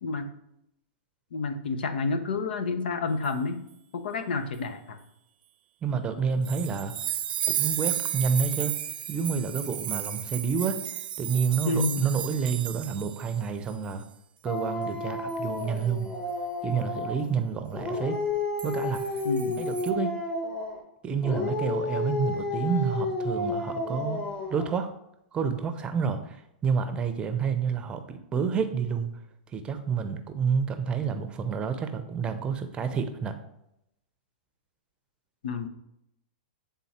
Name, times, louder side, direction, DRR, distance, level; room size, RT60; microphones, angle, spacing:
voice 1, 0.0-0.3 1.3-3.6 3.9-5.0 11.6-12.2 19.2-19.7 35.4-35.7, left 3 dB, 80° left, 9 dB, 0.8 m, -29 dB
voice 2, 5.8-6.9 7.6-8.8 9.1-10.8 11.2-14.0 14.4-16.1 16.6-18.2 18.6-19.1 19.6-20.2 21.0-24.2 24.5-24.9 25.3-26.4 26.6-29.1 29.5-33.3, right 6 dB, 20° right, 8 dB, 0.6 m, -29 dB
sound 1, 6.5-13.4 13.7-13.9 15.3-15.6 18.6-19.9, right 11 dB, 75° right, 0.6 m, -33 dB
Dog, 14.5-17.3 17.7-20.8 21.2-24.8, left 2 dB, 20° left, 1.3 m, -31 dB
8.5 x 3.7 x 4.3 m, 0.82 s
hypercardioid pair, 140°, 5 cm